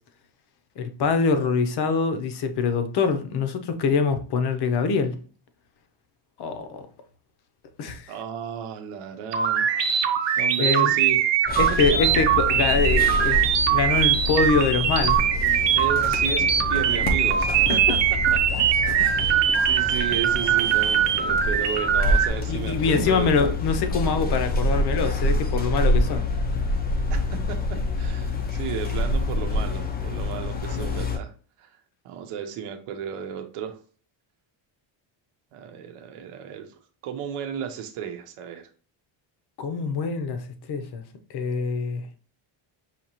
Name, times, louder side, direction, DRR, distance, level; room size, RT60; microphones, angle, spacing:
voice 1, 0.8-5.1 6.4-6.9 7.8-8.1 10.3-10.9 11.6-15.7 17.7-17.8 18.7-19.1 22.5-26.3 39.6-41.0 41.3-42.0, left 4 dB, 50° left, 0.7 m, -24 dB
voice 2, 8.1-9.6 10.4-11.2 15.7-18.0 19.0-23.6 27.3-31.3 31.6-31.7 32.0-33.8 35.5-36.7 37.0-38.7, right 8 dB, 90° right, 0.8 m, -34 dB
sound 1, 9.3-22.3, right 9 dB, 60° right, 0.8 m, -22 dB
sound 2, 11.5-31.2, left 2 dB, 20° left, 0.3 m, -27 dB
5.7 x 2.8 x 2.9 m
cardioid pair, 180°, 49 cm